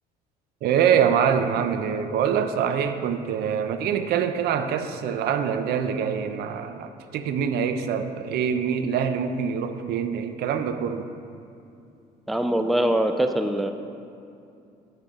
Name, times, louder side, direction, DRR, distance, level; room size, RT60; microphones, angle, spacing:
voice 1, 0.6-11.1, right 7 dB, 70° right, 9 dB, 0.6 m, -24 dB
voice 2, 12.3-13.7, right 1 dB, ahead, 7 dB, 0.4 m, -23 dB
8.4 x 7.7 x 3.6 m, 2.6 s
cardioid pair, 110°, 17 cm